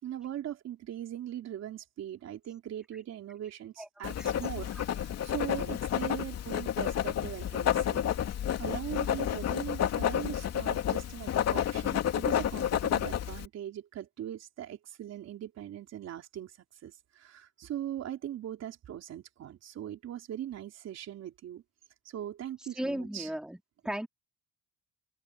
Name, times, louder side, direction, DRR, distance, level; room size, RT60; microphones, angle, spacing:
voice 1, 0.0-8.0 8.6-16.5 16.8-21.6 22.1-23.3, right 11 dB, 55° right, 3.6 m, -40 dB
Writing, 4.0-13.5, left 10 dB, 55° left, 2.8 m, -30 dB
voice 2, 22.8-23.6 23.8-24.1, right 1 dB, ahead, 4.1 m, -34 dB
cardioid pair, 130°, 31 cm